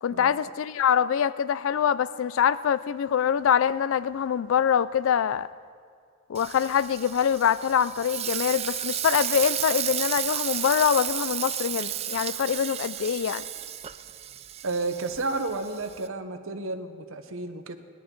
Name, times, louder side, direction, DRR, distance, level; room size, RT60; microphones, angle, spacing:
voice 1, 0.0-5.5 6.3-13.4, left 8 dB, 65° left, 17 dB, 0.3 m, -24 dB
Frying (food), 6.3-16.1, right 11 dB, 30° right, 0.4 m, -33 dB
voice 2, 14.6-17.8, right 3 dB, 70° right, 6 dB, 0.9 m, -31 dB
20.0 x 11.5 x 3.8 m, 2.3 s
head